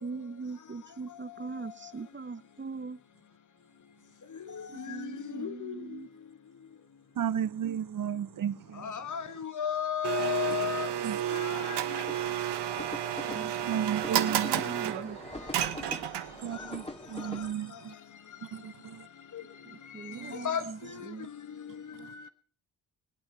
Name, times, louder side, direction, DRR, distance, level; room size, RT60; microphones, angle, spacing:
voice 1, 0.0-3.0 4.7-6.1 13.3-14.0 14.2-15.2 19.6-21.3, right 4 dB, 25° right, 0.9 m, -41 dB
voice 2, 4.5-5.1 5.4-5.7 8.8-10.9 11.3-12.0 20.1-20.2 20.4-20.6, left 9 dB, 45° left, 1.2 m, -33 dB
voice 3, 7.2-8.9 11.0-11.2 13.7-14.7 15.6-15.8 16.4-17.9 18.5-19.1 20.1-20.3 21.9-22.1, right 9 dB, 50° right, 0.7 m, -34 dB
Domestic sounds home sounds, 10.0-16.5, right 11 dB, 80° right, 1.2 m, -31 dB
sound 1, 12.1-17.5, left 1 dB, 15° left, 2.1 m, -44 dB
24.0 x 8.8 x 5.8 m
supercardioid pair, 50°, 41 cm